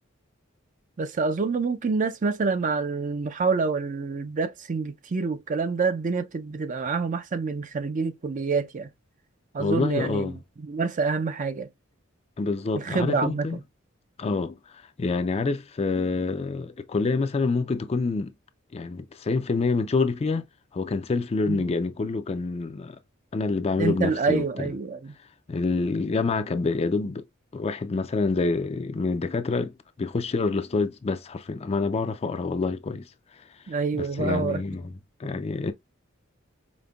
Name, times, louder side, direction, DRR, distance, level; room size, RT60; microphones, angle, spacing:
voice 1, 1.0-8.9 9.5-11.7 12.7-13.6 21.5-21.6 23.8-25.1 33.7-34.6, right 4 dB, 40° right, 0.4 m, -27 dB
voice 2, 9.6-10.4 12.4-13.6 14.2-14.6 15.0-18.3 18.7-20.4 20.7-23.0 23.3-24.7 25.5-27.2 27.5-29.7 30.0-33.1 33.9-34.9 35.2-35.7, left 3 dB, 30° left, 0.4 m, -27 dB
5.1 x 2.1 x 2.3 m
head